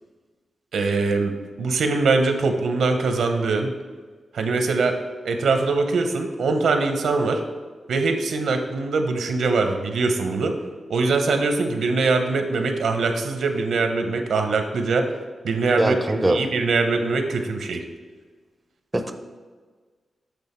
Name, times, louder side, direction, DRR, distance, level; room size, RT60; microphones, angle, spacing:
voice 1, 0.7-1.3 1.6-3.7 4.3-4.9 5.2-7.4 7.9-10.5 10.9-15.0 15.4-16.0 16.3-17.8, right 3 dB, 85° right, 5 dB, 0.7 m, -22 dB
voice 2, 15.8-16.4 18.9-19.1, right 1 dB, 15° right, 6 dB, 0.4 m, -21 dB
7.7 x 3.4 x 4.3 m, 1.5 s
wide cardioid pair, 115°, 0 cm